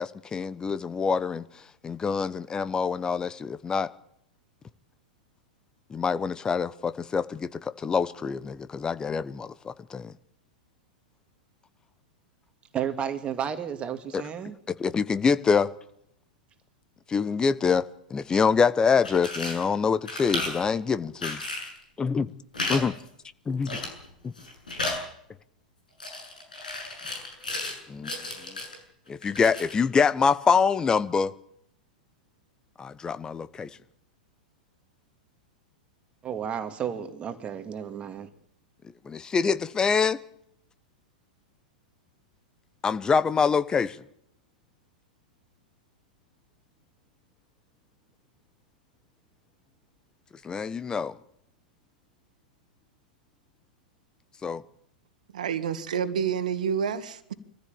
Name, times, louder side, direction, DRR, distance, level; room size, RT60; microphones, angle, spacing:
voice 1, 0.0-1.4 1.8-3.9 5.9-10.1 14.1-14.2 14.8-15.7 17.1-17.8 18.1-21.4 22.0-22.3 22.7-22.9 23.5-23.8 24.2-24.3 27.9-28.1 28.4-28.6 29.1-31.3 32.8-33.7 39.0-40.2 42.8-44.0 50.4-51.1 54.4-54.6, left 5 dB, 15° left, 1.1 m, -25 dB
voice 2, 12.7-14.6 36.2-38.3, right 8 dB, 25° right, 2.3 m, -32 dB
sound 1, 18.9-19.6 20.0-20.6 21.2-21.8 22.5-22.8 23.1-23.2 23.7-24.1 24.4-25.0 26.0-27.8 28.0-28.8 29.2-29.8, left 2 dB, 75° left, 7.4 m, -33 dB
voice 3, 55.3-57.3, right 7 dB, 65° right, 1.8 m, -28 dB
24.0 x 15.0 x 8.9 m
figure-of-eight pair, 95°, 4 cm